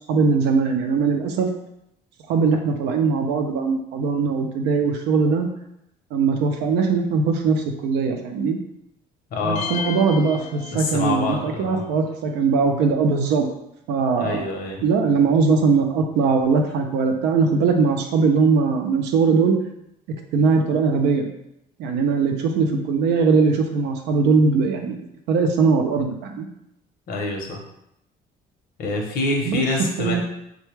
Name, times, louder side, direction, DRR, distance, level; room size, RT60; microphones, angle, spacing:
voice 1, 0.1-1.5 2.3-5.5 6.1-8.6 9.4-13.5 13.9-14.4 14.8-19.5 20.3-21.3 21.8-26.5 29.5-29.6 30.0-30.2, right 4 dB, 90° right, 4 dB, 0.5 m, -20 dB
voice 2, 9.3-9.7 10.7-11.8 14.1-14.8 27.1-27.6 28.8-30.2, left 2 dB, 60° left, 1 dB, 0.8 m, -26 dB
sound 1, 9.6-11.4, left 6 dB, 45° left, 0.4 m, -33 dB
3.3 x 2.2 x 3.1 m, 0.81 s
cardioid pair, 110°, 17 cm